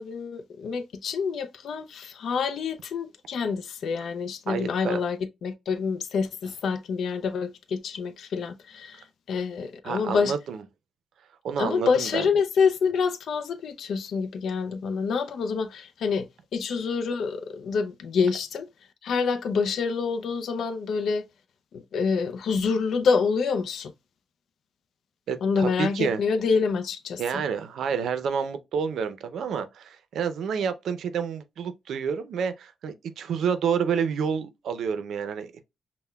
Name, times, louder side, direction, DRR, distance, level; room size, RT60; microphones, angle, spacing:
voice 1, 0.0-10.3 11.6-18.7 19.0-21.2 21.7-23.9 25.4-27.4, left 5 dB, 75° left, 0.4 m, -27 dB
voice 2, 4.5-5.0 9.8-10.6 11.4-12.3 25.3-26.2 27.2-35.6, right 6 dB, 85° right, 0.5 m, -29 dB
5.5 x 2.1 x 2.2 m
cardioid pair, 105°, 0 cm